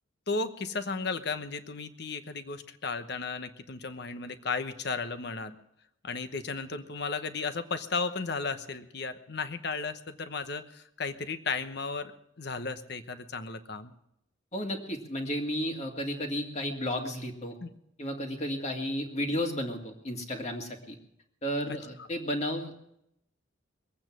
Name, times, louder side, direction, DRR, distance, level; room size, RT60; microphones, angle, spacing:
voice 1, 0.3-5.5 6.0-12.1 12.4-13.9 17.6-17.7 21.7-21.8, left 4 dB, 55° left, 10 dB, 1.0 m, -34 dB
voice 2, 14.5-17.6 18.0-21.0 21.4-22.7, equal, 35° left, 3 dB, 2.0 m, -33 dB
22.0 x 8.8 x 6.1 m, 0.78 s
head